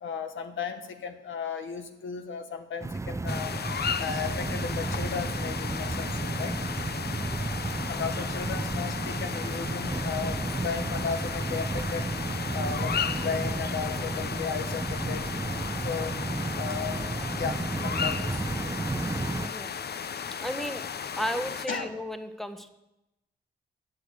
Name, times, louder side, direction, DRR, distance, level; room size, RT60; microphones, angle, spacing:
voice 1, 0.0-3.5 4.0-6.5 7.9-12.1 12.5-15.3 15.8-16.2 16.5-17.0 17.3-18.4 21.7-21.9, left 6 dB, 90° left, 7 dB, 1.0 m, -35 dB
sound 1, 2.8-19.5, right 2 dB, 15° right, 0.4 m, -32 dB
sound 2, 3.3-21.7, left 7 dB, 55° left, 0.5 m, -35 dB
voice 2, 7.0-7.4 19.4-19.7 20.4-20.9 21.2-22.7, equal, ahead, 9 dB, 0.9 m, -34 dB
9.9 x 6.5 x 8.3 m, 0.92 s
cardioid pair, 60°, 19 cm